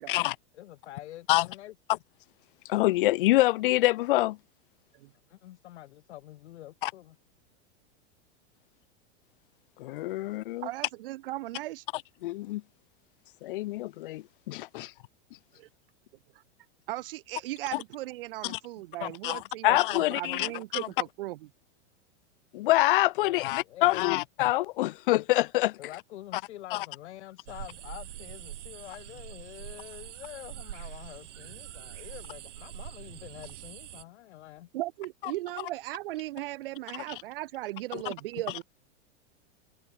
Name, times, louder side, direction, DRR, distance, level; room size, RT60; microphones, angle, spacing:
voice 1, 0.5-1.7 5.3-7.2 23.2-24.2 25.8-34.7, left 14 dB, 70° left, 1.9 m, -46 dB
voice 2, 2.7-4.4 6.8-6.9 9.8-10.7 11.9-12.6 13.4-14.9 17.7-17.8 18.4-18.6 19.0-20.9 22.5-25.8 26.7-26.9 37.9-38.1, left 17 dB, 50° left, 0.5 m, -26 dB
voice 3, 10.6-11.8 15.6-15.7 16.9-21.4 34.7-38.6, right 17 dB, 50° right, 0.9 m, -37 dB
sound 1, 27.5-34.0, right 12 dB, 90° right, 3.5 m, -44 dB
supercardioid pair, 175°, 35 cm